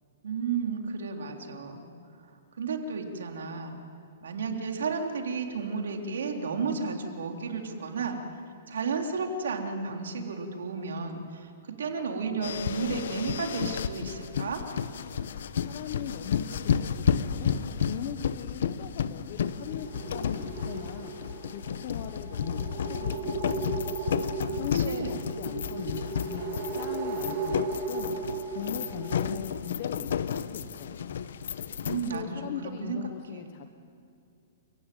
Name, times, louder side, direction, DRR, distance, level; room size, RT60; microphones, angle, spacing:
voice 1, 0.2-1.9 2.6-3.8 4.2-8.2 8.7-14.6 24.4-25.3 31.8-33.0 33.3-33.5, right 4 dB, 90° right, 3 dB, 3.5 m, -33 dB
sound 1, 12.4-32.2, left 7 dB, 70° left, 1.0 m, -32 dB
voice 2, 15.6-21.1 21.5-23.8 24.6-28.1 28.5-31.1 31.8-33.7, left 9 dB, 45° left, 8 dB, 1.1 m, -40 dB
sound 2, 19.5-29.4, right 4 dB, 35° right, 3.1 m, -36 dB
29.5 x 16.0 x 9.2 m, 2.4 s
hypercardioid pair, 165°, 0 cm